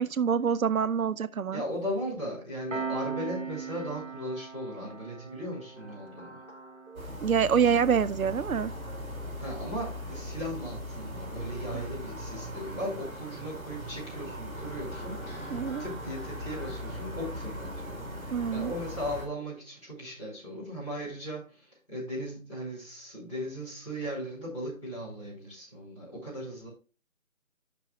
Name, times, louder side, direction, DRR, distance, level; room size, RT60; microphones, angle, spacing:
voice 1, 0.0-1.6 6.9-8.7 11.7-11.8 15.5-15.8 18.3-18.7, right 7 dB, 80° right, 0.7 m, -26 dB
voice 2, 1.5-6.4 9.4-26.7, equal, 20° left, 5.0 m, -37 dB
Piano, 2.7-13.8, right 6 dB, 60° right, 1.3 m, -43 dB
sound 1, 5.7-8.0 8.5-8.9 11.1-11.2 12.3-12.9 13.6-16.8, left 1 dB, 85° left, 4.2 m, -51 dB
sound 2, 6.9-19.3, equal, 5° left, 1.7 m, -39 dB
12.5 x 6.1 x 2.4 m
figure-of-eight pair, 180°, 41 cm